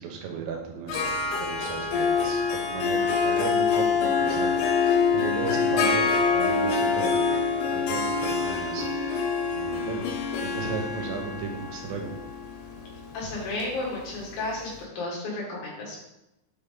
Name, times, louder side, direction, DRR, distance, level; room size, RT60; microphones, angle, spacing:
voice 1, 0.0-10.0 10.4-12.1, right 5 dB, 75° right, 1 dB, 2.6 m, -36 dB
Harp, 0.9-14.4, left 5 dB, 90° left, 3.3 m, -26 dB
voice 2, 13.1-16.0, left 2 dB, 65° left, -4 dB, 2.6 m, -33 dB
7.1 x 3.6 x 3.7 m, 0.90 s
omnidirectional pair, 5.5 m